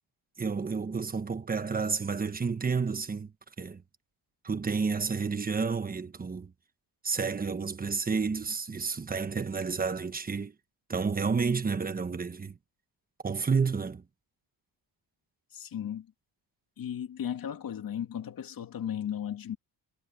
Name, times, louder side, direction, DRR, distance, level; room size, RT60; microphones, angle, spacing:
voice 1, 0.4-3.3 3.6-3.8 4.4-6.5 7.0-10.5 10.9-12.5 13.2-14.0, right 5 dB, 20° right, 1.2 m, -30 dB
voice 2, 15.5-16.1 16.8-19.6, left 9 dB, 50° left, 2.3 m, -35 dB
cardioid pair, 155°, 44 cm